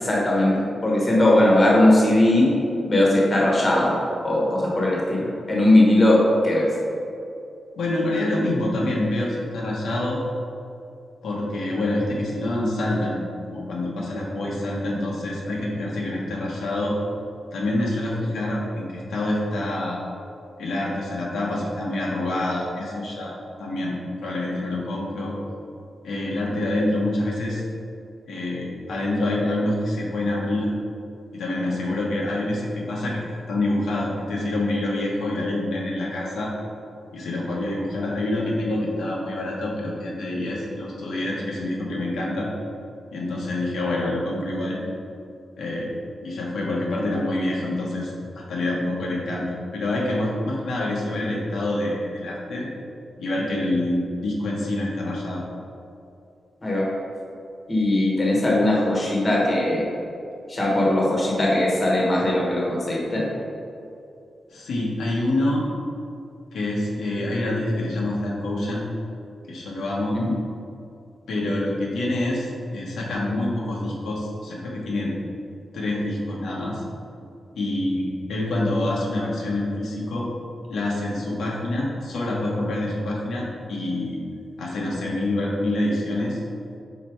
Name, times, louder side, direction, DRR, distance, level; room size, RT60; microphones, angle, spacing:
voice 1, 0.0-2.5 2.9-4.0 4.2-6.2 6.4-6.7 56.6-56.8 57.7-59.8 60.5-63.2 70.1-70.3, left 1 dB, 25° left, -4 dB, 1.1 m, -19 dB
voice 2, 7.8-10.2 11.2-13.2 13.5-16.9 17.5-20.0 20.6-23.3 23.6-25.3 26.0-27.6 28.3-30.7 31.3-36.5 37.1-42.5 43.1-44.8 45.6-45.9 46.2-52.7 53.2-55.4 64.5-65.7 66.5-68.8 69.5-70.2 71.3-75.1 75.7-76.8 77.6-80.3 80.7-84.2 84.6-86.4, left 1 dB, 90° left, -4 dB, 1.2 m, -26 dB
5.1 x 4.1 x 4.6 m, 2.6 s
wide cardioid pair, 170°, 0 cm